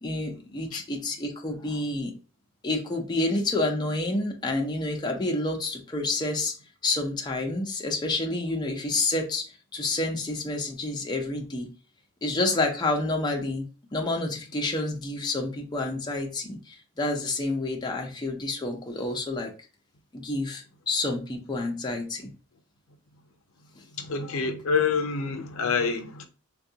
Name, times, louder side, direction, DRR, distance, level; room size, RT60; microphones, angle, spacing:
voice 1, 0.0-2.1 2.6-6.5 6.8-9.4 9.7-11.7 12.2-19.5 20.1-22.3, left 2 dB, 20° left, 0.5 m, -29 dB
voice 2, 23.9-26.2, left 5 dB, 90° left, 0.5 m, -27 dB
3.5 x 2.3 x 2.7 m
head